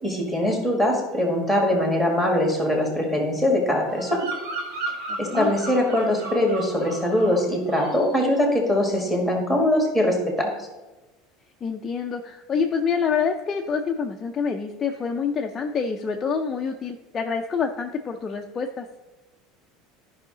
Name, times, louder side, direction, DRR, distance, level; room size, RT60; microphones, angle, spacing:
voice 1, 0.0-4.3 5.2-10.6, left 1 dB, 5° right, 1 dB, 1.7 m, -22 dB
Bird vocalization bird call bird song, 3.9-7.4 7.7-8.1, right 3 dB, 65° right, 2.1 m, -34 dB
voice 2, 11.6-18.9, left 6 dB, 20° left, 3 dB, 0.4 m, -27 dB
12.5 x 5.6 x 3.8 m, 1.1 s
cardioid pair, 175°, 0 cm